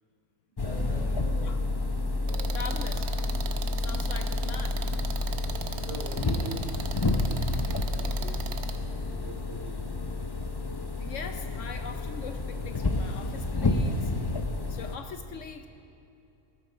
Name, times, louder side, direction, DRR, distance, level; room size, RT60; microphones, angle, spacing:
sound 1, 0.6-15.0, left 2 dB, 40° left, 0.3 m, -30 dB
voice 1, 0.6-1.5 2.3-2.7 5.8-6.7 7.6-8.7 9.1-9.8, right 1 dB, 45° right, -3 dB, 2.4 m, -43 dB
sound 2, 2.3-8.8, right 8 dB, 90° right, 1.3 m, -39 dB
voice 2, 2.5-3.1 3.8-4.8 11.0-14.1 14.7-15.7, left 6 dB, 65° left, 7 dB, 1.0 m, -41 dB
18.5 x 12.5 x 4.4 m, 2.8 s
omnidirectional pair, 1.5 m